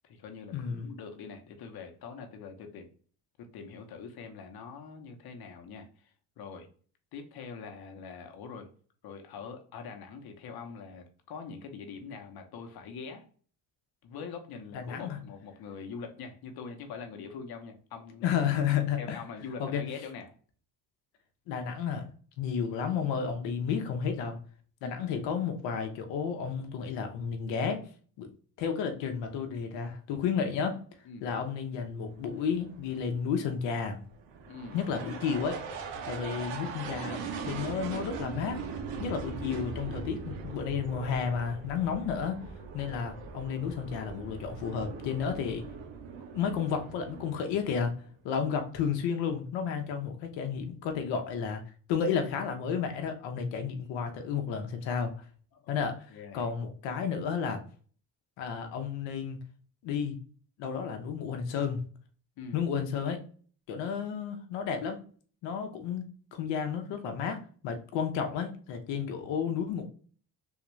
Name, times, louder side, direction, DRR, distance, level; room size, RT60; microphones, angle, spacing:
voice 1, 0.0-2.9 3.4-6.7 7.1-8.7 9.0-13.3 14.0-18.3 19.0-20.3 24.8-25.0 31.0-31.3 34.5-34.8 55.5-55.7 56.1-56.5 62.4-62.6, left 5 dB, 60° left, 4 dB, 0.9 m, -43 dB
voice 2, 0.5-0.9 14.7-15.2 18.2-19.2 19.6-19.8 21.5-22.1 22.4-24.4 24.8-27.8 28.2-28.3 28.6-30.8 31.2-34.0 34.7-35.6 36.0-38.6 39.0-42.4 42.7-45.6 46.3-48.0 48.2-51.6 51.9-55.2 55.7-57.6 58.4-59.4 59.8-60.2 60.6-61.8 62.5-63.2 63.7-65.0 65.4-69.8, left 7 dB, 85° left, 6 dB, 0.8 m, -32 dB
sound 1, 32.1-48.1, right 5 dB, 90° right, 0.7 m, -41 dB
3.6 x 2.4 x 3.1 m, 0.43 s
cardioid pair, 90°, 43 cm